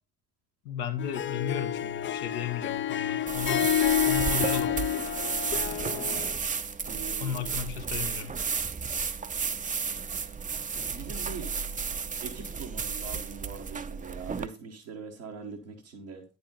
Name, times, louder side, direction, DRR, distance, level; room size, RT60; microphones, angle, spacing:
voice 1, 0.6-3.7 4.1-4.7 7.2-8.3, left 8 dB, 75° left, 1.0 m, -34 dB
Harp, 1.0-6.3, left 10 dB, 35° left, 0.4 m, -29 dB
sound 1, 3.3-14.5, right 5 dB, 25° right, 0.6 m, -32 dB
voice 2, 5.9-6.2 6.8-7.6 10.9-11.5 12.2-16.2, right 5 dB, 85° right, 1.2 m, -42 dB
9.2 x 5.4 x 3.8 m
figure-of-eight pair, 40°, 35 cm